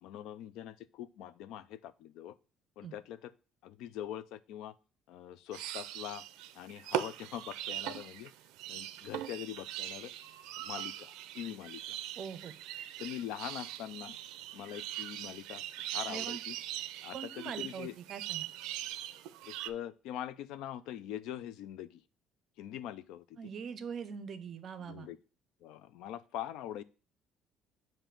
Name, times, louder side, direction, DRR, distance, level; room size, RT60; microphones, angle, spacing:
voice 1, 0.0-2.3 2.8-3.3 3.6-4.7 5.1-6.2 6.6-8.3 8.7-10.1 10.6-12.0 13.0-14.2 14.5-15.6 15.9-16.6 17.0-17.9 19.5-22.0 22.6-23.2 24.8-25.2 25.6-26.8, left 11 dB, 75° left, 15 dB, 0.4 m, -43 dB
sound 1, 5.5-19.7, right 13 dB, 85° right, 0.4 m, -41 dB
voice 2, 12.2-12.6 16.1-16.4 17.1-18.5 23.4-25.1, right 7 dB, 35° right, 12 dB, 0.6 m, -42 dB
7.0 x 2.7 x 5.7 m, 0.34 s
cardioid pair, 165°, 0 cm